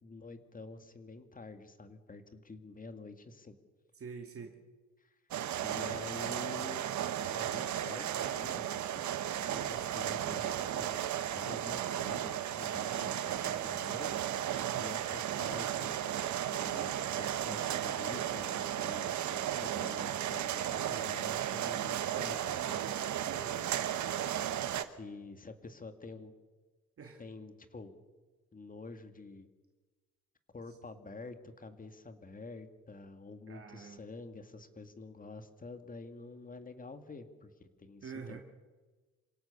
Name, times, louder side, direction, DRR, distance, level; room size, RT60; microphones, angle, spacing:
voice 1, 0.0-3.6 5.0-5.1 5.6-6.9 7.3-9.1 9.3-14.1 14.8-16.0 16.3-22.8 23.6-23.8 24.6-26.3 27.2-28.0 28.5-29.5 30.5-38.4, left 3 dB, 25° left, 8 dB, 2.2 m, -48 dB
voice 2, 3.9-4.6 14.5-14.9 23.2-23.7 27.0-27.2 30.7-30.8 33.5-34.0 38.0-38.4, right 5 dB, 50° right, 3 dB, 2.2 m, -46 dB
sound 1, 5.3-24.8, right 11 dB, 70° right, 1.3 m, -35 dB
27.0 x 17.5 x 6.8 m, 1.3 s
cardioid pair, 90°, 30 cm